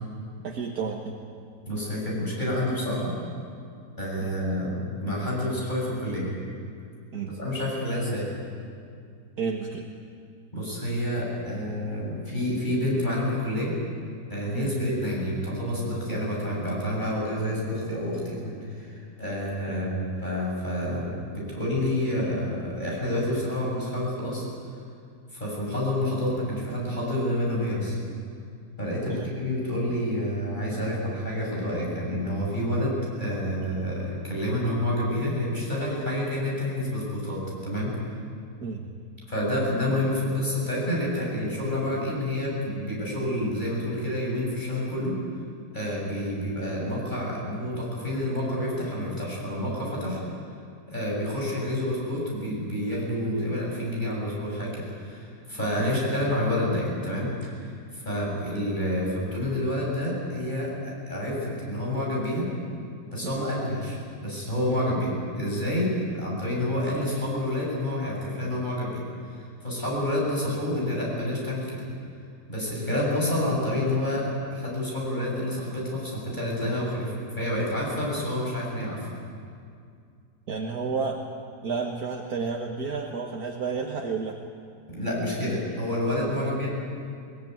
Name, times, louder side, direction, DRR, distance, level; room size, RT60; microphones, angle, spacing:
voice 1, 0.4-1.2 4.2-4.3 7.1-7.3 9.4-9.9 14.5-14.7 19.7-19.9 29.1-29.3 38.6-38.9 55.8-56.0 63.2-63.5 72.9-73.1 80.5-81.3 81.6-84.4 86.2-86.5, right 5 dB, 65° right, 0 dB, 1.9 m, -31 dB
voice 2, 1.7-3.1 4.0-6.3 7.4-8.3 10.5-13.7 14.3-24.5 25.3-28.0 28.8-37.9 39.3-45.2 45.7-50.2 50.9-57.3 57.6-62.5 63.1-69.0 69.3-71.8 72.5-79.1 84.9-86.7, left 1 dB, 25° left, -4 dB, 7.5 m, -28 dB
22.0 x 19.5 x 9.3 m, 2.3 s
omnidirectional pair, 1.8 m